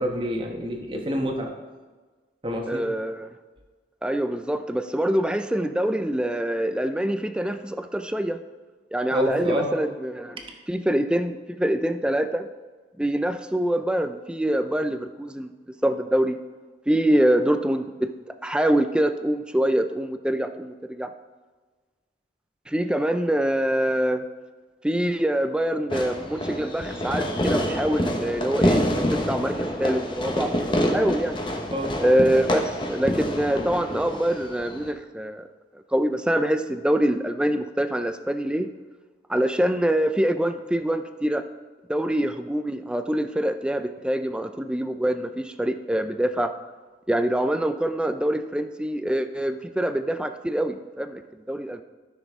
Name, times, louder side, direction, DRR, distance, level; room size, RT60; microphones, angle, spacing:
voice 1, 0.0-1.5 2.4-2.8 9.1-9.7 10.4-10.5 31.7-31.9, equal, 30° right, 2 dB, 1.1 m, -27 dB
voice 2, 2.7-3.3 4.0-8.4 8.9-10.4 10.7-12.5 13.0-15.5 15.8-16.4 16.9-18.1 18.4-21.1 22.7-24.2 24.8-28.8 29.1-30.5 30.9-31.4 32.0-35.5 35.9-38.7 39.3-41.4 41.9-46.5 47.1-51.2 51.5-51.8, right 1 dB, 5° right, 9 dB, 0.3 m, -24 dB
Fireworks, 25.9-34.9, equal, 25° left, 0.9 m, -27 dB
13.5 x 6.1 x 3.6 m, 1.4 s
head